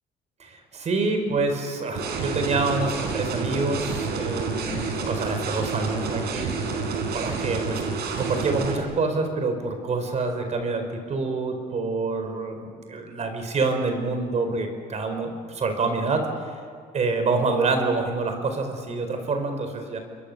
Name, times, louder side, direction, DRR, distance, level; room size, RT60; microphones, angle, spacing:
voice 1, 0.4-6.5 7.1-7.8 8.2-16.2 16.9-20.0, right 3 dB, 40° right, 6 dB, 4.8 m, -27 dB
sound 1, 2.0-8.8, right 4 dB, 70° right, 4.9 m, -29 dB
28.5 x 22.0 x 6.9 m, 2.1 s
cardioid pair, 110°, 17 cm